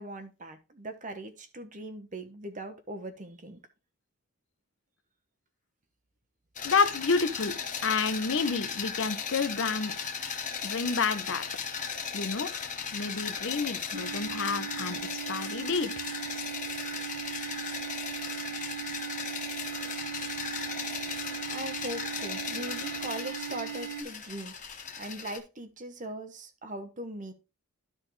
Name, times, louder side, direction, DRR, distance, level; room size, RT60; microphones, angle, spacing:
voice 1, 0.0-3.6 21.5-24.5 25.0-27.3, right 1 dB, 35° right, 1.1 m, -40 dB
voice 2, 6.6-7.5 7.8-9.9 10.6-11.4 12.1-12.5 12.9-15.0 15.3-16.0, left 4 dB, 60° left, 0.8 m, -29 dB
sound 1, 6.6-25.4, left 6 dB, 35° left, 1.0 m, -37 dB
sound 2, 13.9-24.0, right 10 dB, 60° right, 1.7 m, -39 dB
12.5 x 4.3 x 3.2 m
head